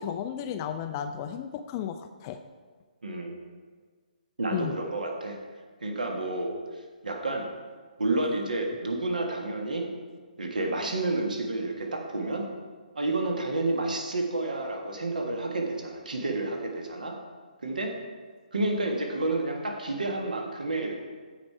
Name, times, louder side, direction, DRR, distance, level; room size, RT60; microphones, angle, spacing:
voice 1, 0.0-2.4 4.5-4.7, left 9 dB, 25° left, 7 dB, 0.4 m, -33 dB
voice 2, 3.0-3.3 4.4-5.4 5.8-6.5 7.0-7.5 8.0-9.9 10.4-12.5 12.9-17.1 17.6-17.9 18.5-21.0, right 2 dB, 65° right, 2 dB, 1.5 m, -30 dB
14.5 x 5.2 x 4.6 m, 1.5 s
figure-of-eight pair, 135°, 5 cm